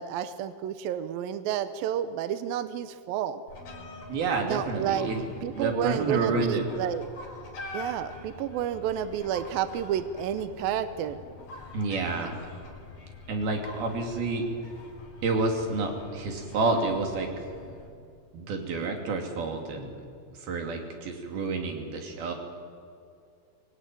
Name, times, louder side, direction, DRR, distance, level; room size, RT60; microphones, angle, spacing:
voice 1, 0.0-3.4 4.4-5.1 5.4-7.1 7.7-11.2, right 10 dB, 80° right, 11 dB, 2.1 m, -30 dB
sound 1, 3.5-17.9, left 3 dB, 50° left, 5.5 m, -45 dB
voice 2, 4.1-5.2 5.5-6.7 11.7-12.4 13.3-14.5 15.2-17.3 18.3-19.9 20.3-22.3, right 3 dB, 60° right, 3 dB, 4.4 m, -29 dB
25.0 x 21.5 x 9.2 m, 2.3 s
omnidirectional pair, 5.2 m